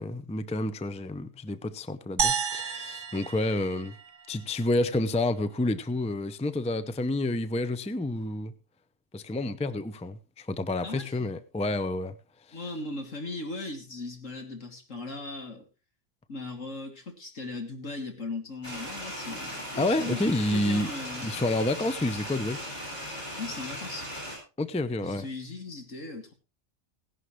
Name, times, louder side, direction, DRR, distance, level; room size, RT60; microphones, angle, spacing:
voice 1, 0.0-3.9 4.3-8.5 9.1-12.2 12.5-12.6 19.8-20.9 21.2-22.6 24.6-25.2, left 2 dB, 10° left, 0.5 m, -29 dB
sound 1, 2.2-4.6, right 7 dB, 45° right, 0.8 m, -31 dB
voice 2, 10.8-11.4 12.5-15.6 16.3-20.2 20.5-21.3 23.3-24.1 25.0-26.3, left 3 dB, 80° left, 3.1 m, -38 dB
sound 2, 18.6-24.4, equal, 35° left, 7.3 m, -38 dB
17.0 x 11.0 x 3.2 m
omnidirectional pair, 1.3 m